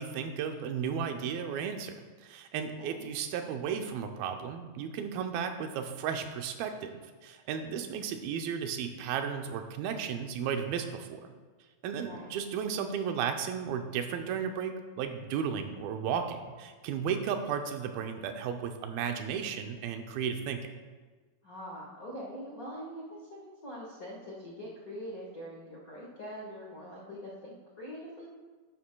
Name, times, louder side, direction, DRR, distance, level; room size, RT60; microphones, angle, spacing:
voice 1, 0.0-1.9 2.2-11.2 11.8-20.7, right 7 dB, 85° right, 6 dB, 2.5 m, -34 dB
voice 2, 7.7-8.0 12.0-12.3 21.4-28.3, equal, 65° left, -5 dB, 0.8 m, -43 dB
11.5 x 11.0 x 2.3 m, 1.4 s
omnidirectional pair, 4.2 m